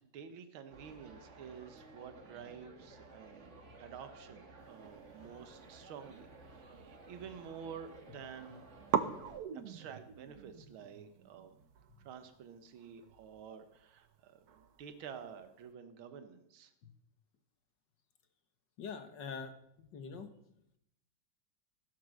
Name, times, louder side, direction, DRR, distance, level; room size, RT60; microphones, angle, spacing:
voice 1, 0.0-3.5 3.8-8.7 8.9-11.6 12.1-16.7, right 7 dB, 75° right, 9 dB, 2.0 m, -50 dB
sound 1, 0.7-9.4, right 3 dB, 35° right, 1.7 m, -55 dB
sound 2, 5.3-7.1 7.4-8.1 8.3-8.4 8.9-15.7, right 7 dB, 60° right, 1.1 m, -42 dB
voice 2, 18.8-20.3, left 5 dB, 60° left, 8 dB, 1.8 m, -44 dB
15.5 x 8.5 x 6.5 m, 0.76 s
omnidirectional pair, 2.3 m